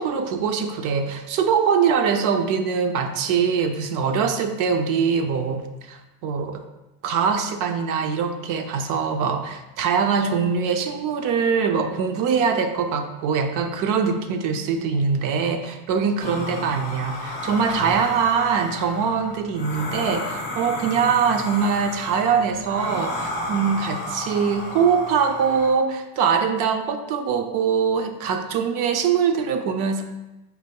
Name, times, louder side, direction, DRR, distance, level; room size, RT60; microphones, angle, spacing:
voice 1, 0.0-6.6 7.0-30.0, right 6 dB, 50° right, 7 dB, 0.5 m, -23 dB
sound 1, 16.2-25.7, left 2 dB, 25° left, 1.2 m, -32 dB
5.3 x 4.2 x 2.2 m, 1.0 s
cardioid pair, 160°, 40 cm